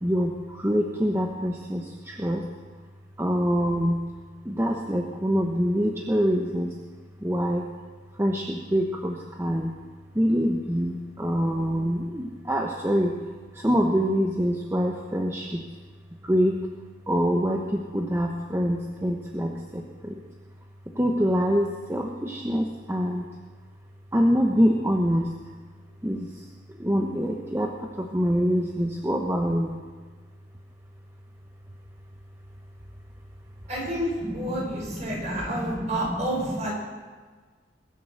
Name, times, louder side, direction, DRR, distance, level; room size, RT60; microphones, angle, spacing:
voice 1, 0.0-2.5 3.2-4.0 4.4-6.7 7.2-7.6 8.1-9.7 10.1-13.2 13.5-15.6 16.2-16.6 17.1-20.2 20.9-23.3 24.1-25.3 26.0-26.5 26.8-29.7 34.2-36.7, equal, 15° right, 0 dB, 1.0 m, -25 dB
voice 2, 33.7-36.7, right 1 dB, 40° right, -3 dB, 5.4 m, -30 dB
22.0 x 7.7 x 6.5 m, 1.4 s
head